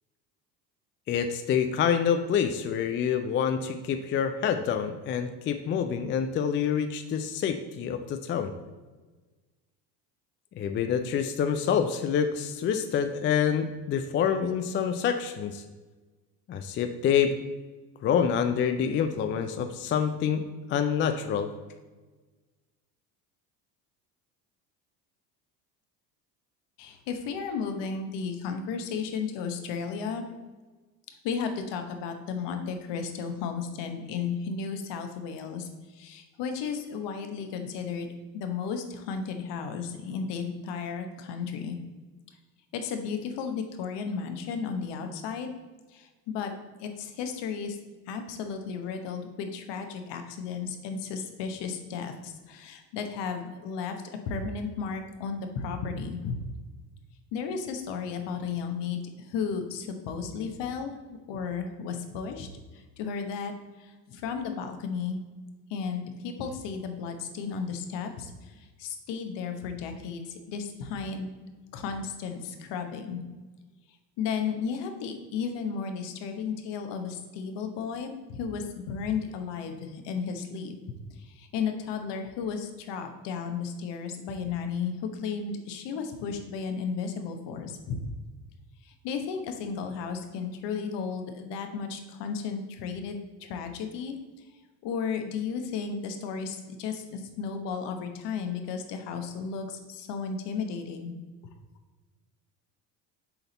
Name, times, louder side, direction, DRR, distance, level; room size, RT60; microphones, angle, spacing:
voice 1, 1.1-8.5 10.6-15.6 16.5-17.4 18.0-20.4 20.7-21.5, left 7 dB, 25° left, 8 dB, 0.4 m, -27 dB
voice 2, 26.8-30.2 31.2-38.1 38.3-41.8 42.7-45.5 45.9-46.5 46.8-47.8 48.1-54.0 54.2-56.4 57.3-62.5 62.7-63.5 63.8-65.2 65.7-71.3 71.7-73.2 74.2-80.7 81.1-88.0 88.8-94.1 94.8-101.1, left 6 dB, 55° left, 6 dB, 1.1 m, -34 dB
6.9 x 4.1 x 4.0 m, 1.3 s
hypercardioid pair, 65°, 50 cm